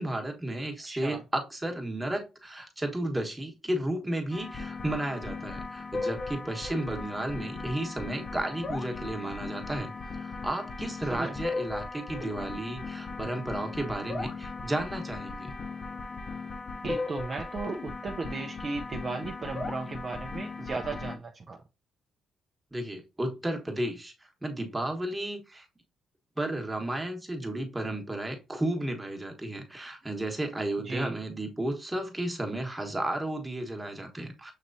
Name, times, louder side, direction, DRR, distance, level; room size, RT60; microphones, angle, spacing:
voice 1, 0.0-15.5 22.7-25.6 26.4-34.5, right 1 dB, 10° right, 1.1 m, -33 dB
voice 2, 0.8-1.2 11.1-11.4 16.8-21.6 30.8-31.2, right 3 dB, 40° right, 0.5 m, -35 dB
sound 1, 4.3-21.2, left 3 dB, 40° left, 0.7 m, -37 dB
6.5 x 3.0 x 2.6 m
cardioid pair, 90°, 0 cm